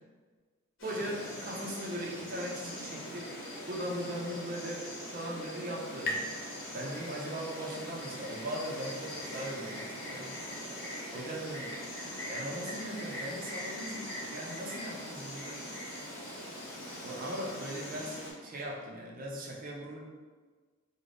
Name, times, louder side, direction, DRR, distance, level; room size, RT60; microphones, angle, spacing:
Insect, 0.8-18.3, left 1 dB, 65° left, 1.1 m, -42 dB
voice 1, 0.8-3.3 3.7-6.2 6.7-10.7 11.1-11.7 12.3-15.7 17.0-20.0, right 1 dB, 40° right, -3 dB, 0.5 m, -39 dB
sound 1, 4.6-8.0, left 1 dB, 45° left, 0.4 m, -42 dB
3.3 x 2.1 x 3.8 m, 1.4 s
head